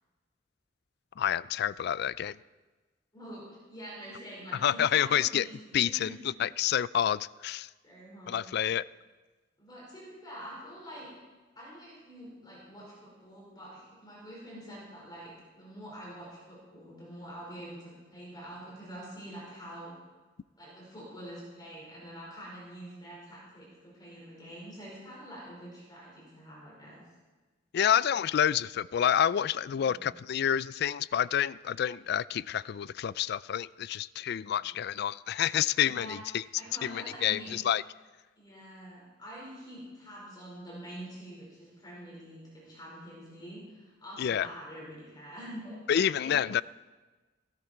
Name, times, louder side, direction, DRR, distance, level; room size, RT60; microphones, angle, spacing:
voice 1, 1.2-2.4 4.6-5.4 5.7-6.1 6.4-7.7 8.3-8.8 27.7-36.4 36.8-37.8 44.2-44.5 45.9-46.6, left 9 dB, 60° left, 0.3 m, -28 dB
voice 2, 3.1-6.1 7.8-8.4 9.6-11.1 11.5-20.0 20.6-27.0 29.7-30.1 34.4-34.6 35.8-36.2 36.6-37.5 38.4-46.3, equal, 25° left, 5.0 m, -46 dB
16.5 x 13.0 x 4.5 m
head